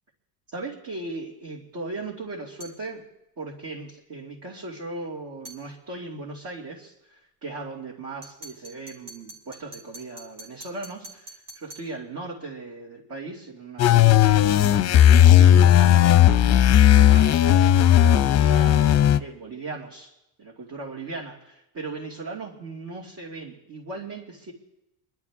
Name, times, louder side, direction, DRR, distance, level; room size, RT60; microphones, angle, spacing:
voice 1, 0.5-3.1 3.4-17.5 17.9-20.1 20.4-24.5, right 3 dB, 45° right, -4 dB, 2.8 m, -38 dB
sound 1, 2.6-2.9 5.4-5.7 8.2-11.9, right 2 dB, 90° right, 3.3 m, -45 dB
sound 2, 13.8-19.2, left 11 dB, 35° left, 0.6 m, -15 dB
23.5 x 12.0 x 3.7 m, 0.89 s
supercardioid pair, 75°, 45 cm